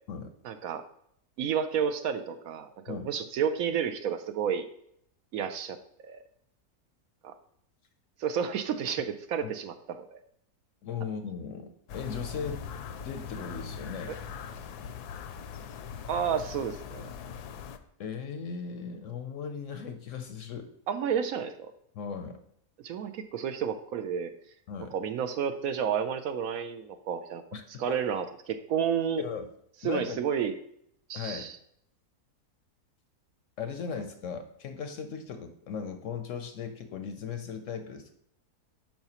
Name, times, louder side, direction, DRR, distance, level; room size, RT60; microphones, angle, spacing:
voice 1, 0.4-0.8 1.4-4.7 5.3-5.8 6.0-6.2 7.2-7.3 8.2-10.2 16.1-17.1 20.9-21.7 22.8-24.3 24.9-27.4 27.8-29.2 29.8-30.5 31.1-31.6, right 7 dB, 70° right, 8 dB, 0.9 m, -31 dB
voice 2, 10.8-12.6 13.0-14.2 18.0-20.7 21.9-22.4 24.7-24.9 27.5-28.0 29.2-29.5 29.8-30.2 31.1-31.5 33.6-38.1, left 6 dB, 65° left, 7 dB, 0.8 m, -37 dB
sound 1, 11.9-17.8, left 6 dB, 85° left, 1.1 m, -41 dB
8.8 x 5.8 x 2.9 m, 0.71 s
omnidirectional pair, 1.7 m